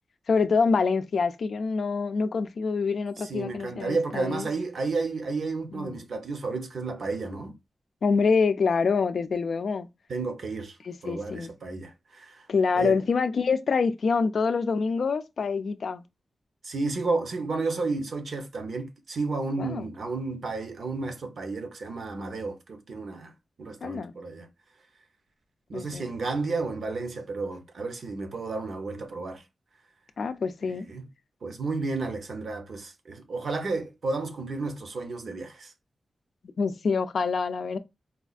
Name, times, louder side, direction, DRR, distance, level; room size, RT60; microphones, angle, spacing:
voice 1, 0.3-4.5 5.7-5.9 8.0-9.9 10.9-11.5 12.5-16.0 19.6-19.9 23.8-24.1 25.7-26.1 30.2-30.9 36.6-37.8, left 5 dB, 70° left, 0.4 m, -26 dB
voice 2, 3.2-7.5 10.1-10.8 11.0-12.5 12.7-13.0 16.6-23.3 23.6-24.5 25.7-29.4 30.7-31.1 31.4-35.7, right 3 dB, 70° right, 0.7 m, -32 dB
4.2 x 2.3 x 2.4 m
wide cardioid pair, 90°, 0 cm